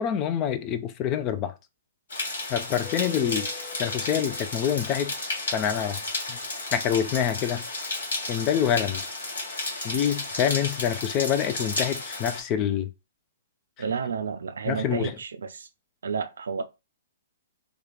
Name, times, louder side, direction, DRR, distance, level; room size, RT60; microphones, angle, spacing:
voice 1, 0.0-1.5 2.5-3.5 3.8-5.1 5.5-6.0 6.3-6.4 6.7-7.6 8.3-9.0 9.8-12.9 14.7-15.2, left 9 dB, 30° left, 0.5 m, -26 dB
sound 1, 2.1-12.4, left 2 dB, 70° left, 1.7 m, -33 dB
Keyboard (musical), 2.8-5.4, left 9 dB, 50° left, 1.0 m, -47 dB
voice 2, 13.8-15.7 16.0-16.7, right 6 dB, 70° right, 0.5 m, -31 dB
3.1 x 2.4 x 3.9 m
figure-of-eight pair, 115°, 0 cm